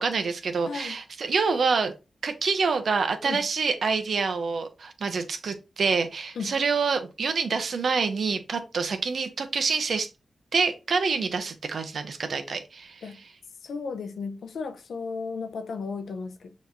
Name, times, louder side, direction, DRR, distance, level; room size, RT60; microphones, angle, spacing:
voice 1, 0.0-1.9 2.2-10.1 10.5-13.0, right 5 dB, 75° right, 0.8 m, -27 dB
voice 2, 0.6-1.0 3.2-3.4 6.4-6.5 13.0-13.2 13.6-16.5, left 5 dB, 85° left, 0.6 m, -34 dB
6.3 x 3.0 x 2.7 m
cardioid pair, 55°, 0 cm